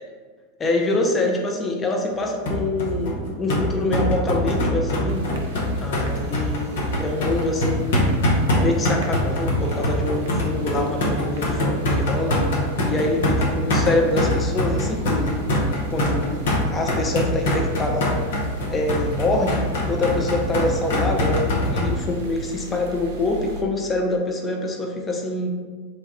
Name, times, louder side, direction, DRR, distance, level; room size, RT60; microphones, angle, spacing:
voice 1, 0.6-5.3 5.8-8.2 8.6-12.4 12.8-15.4 15.9-16.5 16.7-18.2 18.7-25.5, left 2 dB, 20° left, 1 dB, 0.5 m, -25 dB
sound 1, 2.5-21.9, left 1 dB, 65° left, 0.8 m, -23 dB
sound 2, 5.1-23.6, right 2 dB, 60° right, 0.5 m, -38 dB
3.2 x 2.3 x 4.0 m, 1.5 s
figure-of-eight pair, 85°, 0 cm